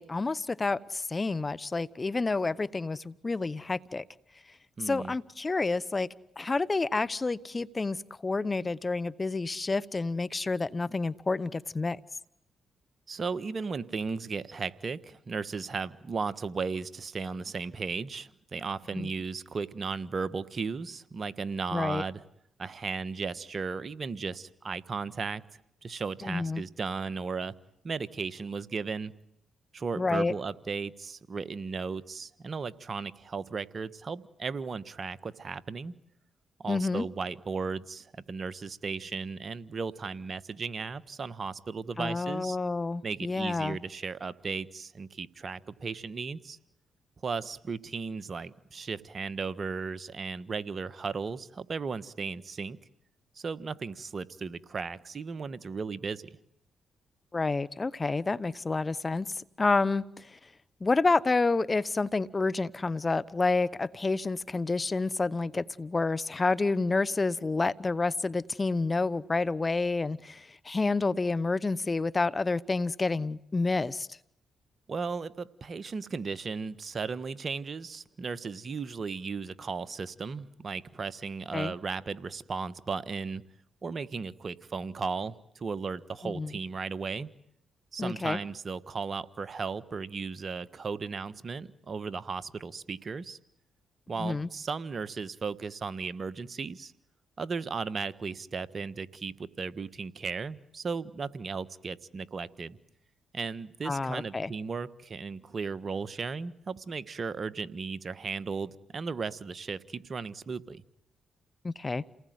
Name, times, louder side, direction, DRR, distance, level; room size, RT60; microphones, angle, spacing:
voice 1, 0.0-4.0 4.8-6.1 6.4-12.0 18.9-19.1 21.7-22.0 26.2-26.6 30.0-30.3 36.7-37.0 42.0-43.8 57.3-60.4 60.8-74.2 81.5-81.7 86.2-86.5 88.0-88.4 94.2-94.5 103.8-104.5 111.6-112.0, left 3 dB, 30° left, 18 dB, 1.0 m, -29 dB
voice 2, 4.8-5.1 13.1-22.2 22.6-25.4 25.8-27.5 27.8-29.1 29.7-35.9 36.6-42.6 43.0-46.6 47.2-52.8 53.3-56.3 74.9-83.4 83.8-87.3 87.9-93.4 94.1-96.9 97.4-102.8 103.3-110.8, right 5 dB, 50° right, 16 dB, 1.4 m, -35 dB
29.5 x 19.5 x 9.5 m, 0.74 s
supercardioid pair, 55°, 0 cm